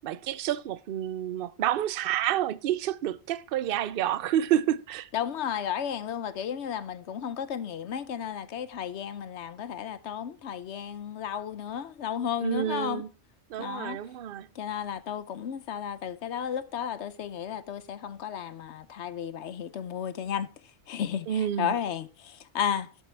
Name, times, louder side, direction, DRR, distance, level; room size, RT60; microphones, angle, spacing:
voice 1, 0.0-5.1 12.4-13.1 13.5-14.5 21.3-21.7, right 11 dB, 55° right, 0.7 m, -29 dB
voice 2, 5.1-13.0 13.6-14.0 14.6-20.5 20.9-22.9, left 8 dB, 65° left, 1.0 m, -33 dB
11.0 x 7.6 x 3.4 m
omnidirectional pair, 1.3 m